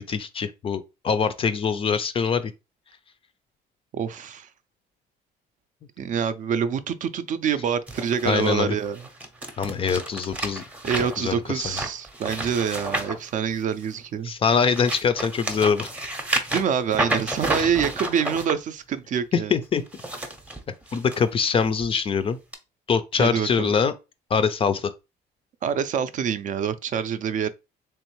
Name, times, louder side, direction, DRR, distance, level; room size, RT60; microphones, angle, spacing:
voice 1, 0.0-2.5 8.2-8.8 9.6-10.6 11.2-11.8 14.2-15.9 17.6-17.7 19.3-19.8 20.9-22.4 22.9-23.9 24.3-24.9, left 6 dB, 30° left, 0.4 m, -23 dB
voice 2, 3.9-4.5 6.0-9.0 10.8-14.3 16.5-19.5 23.2-23.7 25.6-27.5, right 7 dB, 45° right, 0.4 m, -26 dB
sound 1, 7.9-14.0 14.5-18.5 19.8-21.2 21.6-21.9 22.5-22.6, right 1 dB, 5° right, 0.6 m, -31 dB
3.5 x 3.1 x 3.0 m
cardioid pair, 125°, 18 cm